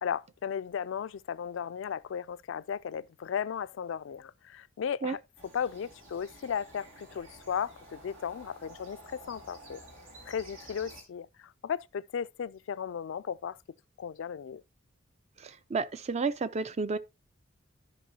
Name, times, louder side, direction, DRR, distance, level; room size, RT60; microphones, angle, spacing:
voice 1, 0.0-5.2 5.5-9.8 10.3-13.6 14.0-14.6, left 7 dB, 70° left, 0.3 m, -35 dB
sound 1, 5.4-11.0, right 1 dB, 80° right, 2.4 m, -51 dB
voice 2, 15.4-17.0, right 4 dB, 35° right, 0.4 m, -31 dB
14.0 x 5.4 x 2.8 m
head